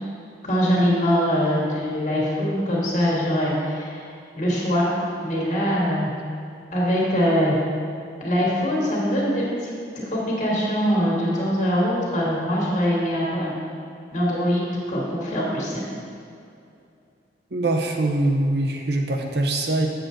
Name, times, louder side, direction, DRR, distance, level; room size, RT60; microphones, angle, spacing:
voice 1, 0.4-4.0 4.3-4.9 5.2-6.1 6.7-7.6 8.2-9.7 10.1-13.5 14.1-15.8, equal, 45° left, -5 dB, 1.9 m, -23 dB
voice 2, 17.5-19.9, right 2 dB, 65° right, 3 dB, 0.7 m, -23 dB
7.9 x 6.8 x 3.8 m, 2.5 s
head